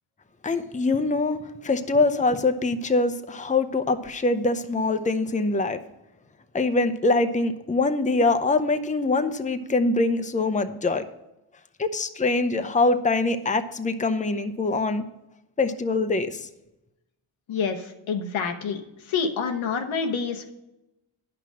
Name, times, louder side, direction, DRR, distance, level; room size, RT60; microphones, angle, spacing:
voice 1, 0.4-5.8 6.5-11.0 11.8-15.0 15.6-16.5, left 3 dB, 15° left, 9 dB, 0.7 m, -24 dB
voice 2, 17.5-18.8 19.1-20.5, left 5 dB, 90° left, 4 dB, 1.1 m, -27 dB
9.8 x 5.9 x 6.2 m, 0.95 s
cardioid pair, 60°, 46 cm